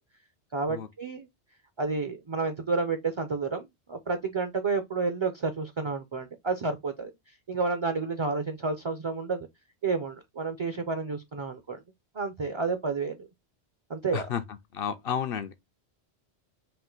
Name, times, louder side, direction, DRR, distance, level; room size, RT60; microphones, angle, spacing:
voice 1, 0.5-1.3 1.8-7.1 7.5-9.5 9.8-11.8 12.1-13.3 13.9-14.3, right 4 dB, 35° right, 0.5 m, -30 dB
voice 2, 14.7-15.5, left 8 dB, 60° left, 0.7 m, -31 dB
4.4 x 2.5 x 3.8 m
omnidirectional pair, 1.1 m